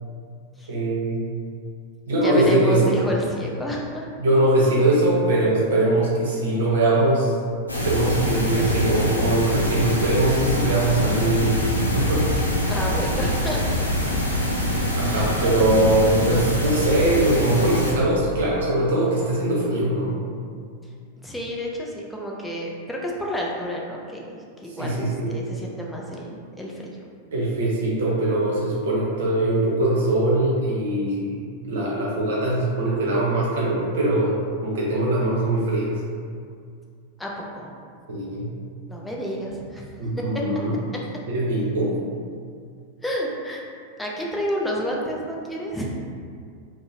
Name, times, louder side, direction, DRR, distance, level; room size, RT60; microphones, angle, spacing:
voice 1, 0.7-1.2 2.1-2.9 4.2-7.3 7.7-11.6 11.9-12.5 14.3-20.1 24.7-25.3 27.3-34.3 34.6-35.9 38.1-38.5 40.0-40.8 41.3-41.9, right 1 dB, 60° right, -5 dB, 0.7 m, -22 dB
voice 2, 2.2-4.1 12.7-13.9 15.1-15.3 21.2-27.0 37.2-37.7 38.9-39.9 40.2-40.4 43.0-43.6 44.0-45.9, equal, 5° left, -2 dB, 0.4 m, -29 dB
sound 1, 7.7-17.9, left 1 dB, 80° left, 0.5 m, -24 dB
2.6 x 2.0 x 2.8 m, 2.2 s
figure-of-eight pair, 90°, 0 cm